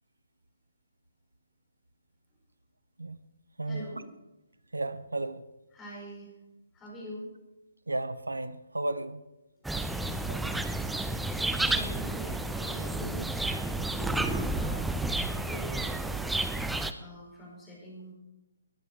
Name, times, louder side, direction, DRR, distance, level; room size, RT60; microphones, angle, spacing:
voice 1, 3.6-4.0 5.7-6.3 6.7-7.3 10.0-10.6 11.1-16.1 17.0-18.1, equal, 15° left, -3 dB, 5.2 m, -44 dB
voice 2, 4.7-5.4 7.9-9.2 10.3-10.5, right 2 dB, 70° right, 14 dB, 0.7 m, -33 dB
sound 1, 9.6-16.9, right 2 dB, 5° right, 0.5 m, -31 dB
19.5 x 9.9 x 4.6 m, 0.99 s
figure-of-eight pair, 140°, 0 cm